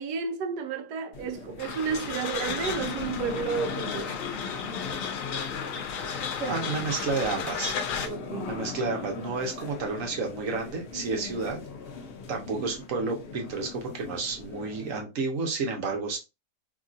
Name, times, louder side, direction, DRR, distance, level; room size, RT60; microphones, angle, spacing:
voice 1, 0.0-4.2 8.0-8.6, right 6 dB, 80° right, 1.1 m, -32 dB
sound 1, 1.1-15.0, left 5 dB, 85° left, 0.5 m, -39 dB
sound 2, 1.6-8.1, left 6 dB, 65° left, 0.9 m, -34 dB
voice 2, 6.4-7.7 8.5-11.6 12.3-16.2, right 4 dB, 60° right, 1.1 m, -31 dB
3.0 x 2.7 x 2.4 m
omnidirectional pair, 1.8 m